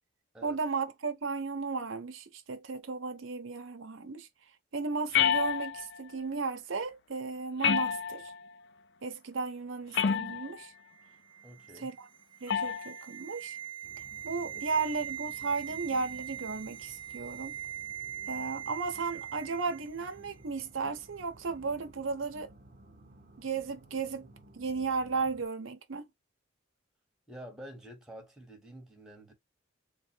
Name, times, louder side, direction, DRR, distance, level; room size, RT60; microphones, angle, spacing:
voice 1, 0.4-4.3 4.7-8.3 9.0-10.7 11.8-12.1 12.4-13.6 14.2-17.6 18.3-22.5 23.4-26.1, right 4 dB, 75° right, 0.7 m, -35 dB
sound 1, 5.1-6.0 7.6-8.5 9.9-10.6 12.5-12.9, left 7 dB, 60° left, 0.4 m, -28 dB
sound 2, 10.9-20.2 20.4-20.6, right 10 dB, 25° right, 0.3 m, -42 dB
voice 2, 11.4-11.9 14.5-14.9 27.3-29.3, equal, 5° right, 1.2 m, -49 dB
sound 3, 13.8-25.5, right 1 dB, 40° right, 0.8 m, -56 dB
3.8 x 2.2 x 4.3 m
head